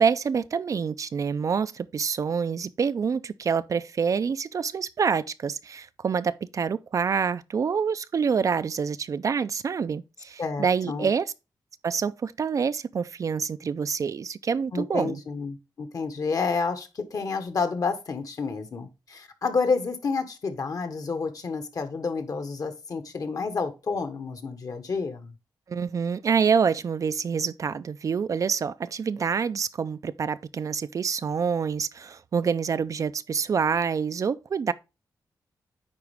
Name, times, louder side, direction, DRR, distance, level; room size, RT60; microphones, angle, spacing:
voice 1, 0.0-11.3 11.8-15.2 25.7-34.7, right 6 dB, 45° right, 0.3 m, -26 dB
voice 2, 10.4-11.1 14.7-25.3, left 4 dB, 55° left, 1.2 m, -29 dB
9.7 x 4.1 x 3.4 m
wide cardioid pair, 115°, 7 cm